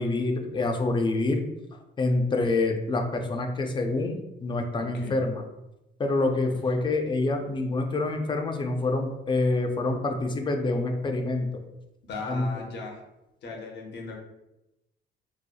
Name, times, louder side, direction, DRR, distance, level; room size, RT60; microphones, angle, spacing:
voice 1, 0.0-1.4 2.0-5.4 6.0-11.6 12.3-12.5, left 2 dB, 25° left, 4 dB, 0.3 m, -26 dB
voice 2, 4.8-5.1 12.1-13.0 13.4-14.1, left 3 dB, 60° left, 0 dB, 0.7 m, -37 dB
2.7 x 2.0 x 2.2 m, 0.92 s
cardioid pair, 90°, 20 cm